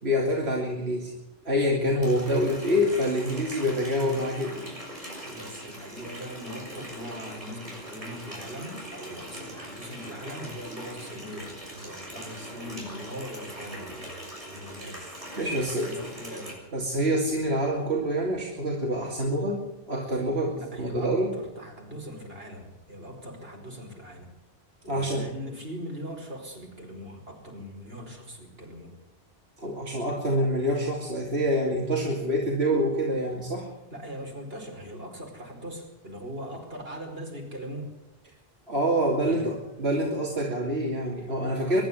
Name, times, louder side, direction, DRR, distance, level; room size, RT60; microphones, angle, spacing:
voice 1, 0.0-1.1 1.4-4.7 15.4-16.0 16.7-21.3 24.8-25.3 29.6-33.7 38.7-41.8, equal, 90° right, -1 dB, 3.0 m, -26 dB
Water tap faucet, 2.0-16.5, right 1 dB, 35° right, 6.6 m, -41 dB
voice 2, 2.4-2.9 5.2-16.6 20.5-24.3 24.9-28.9 33.9-37.9 39.2-39.5 41.7-41.8, equal, 75° right, 1 dB, 5.3 m, -41 dB
23.5 x 11.5 x 9.8 m, 0.93 s
omnidirectional pair, 1.0 m